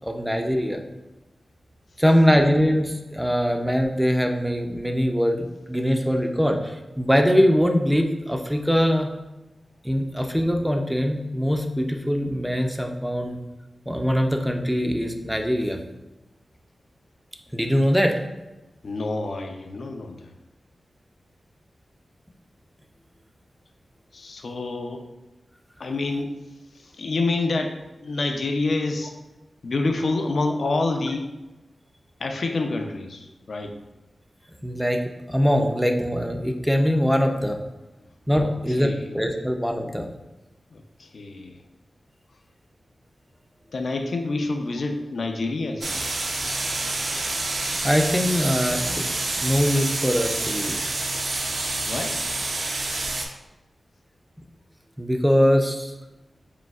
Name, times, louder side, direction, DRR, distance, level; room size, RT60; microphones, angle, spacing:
voice 1, 0.0-0.8 2.0-9.1 9.8-13.4 13.9-15.8 17.5-18.1 34.6-35.0 35.3-37.6 38.3-40.1 47.8-49.1 49.4-50.8 55.0-55.9, equal, 5° right, 4 dB, 0.4 m, -22 dB
voice 2, 18.8-20.3 24.1-25.1 25.8-26.3 26.7-29.1 29.6-31.3 32.2-33.8 38.3-38.5 38.8-39.1 40.7-41.5 43.7-46.0 51.9-52.2, left 3 dB, 65° left, 4 dB, 0.4 m, -28 dB
sound 1, 45.8-53.3, right 2 dB, 60° right, 0.5 m, -28 dB
5.0 x 3.3 x 2.3 m, 1.0 s
wide cardioid pair, 115°, 0 cm